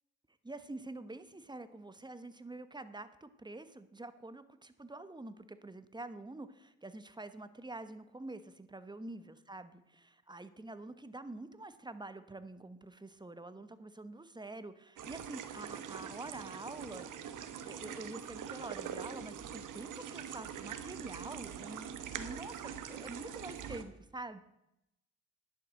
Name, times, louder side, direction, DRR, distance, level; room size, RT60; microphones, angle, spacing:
voice 1, 0.4-17.1 17.6-24.4, right 2 dB, 15° right, 12 dB, 1.1 m, -47 dB
sound 1, 15.0-23.8, right 8 dB, 70° right, 1.2 m, -43 dB
11.0 x 7.6 x 6.4 m, 0.87 s
supercardioid pair, 65°, 32 cm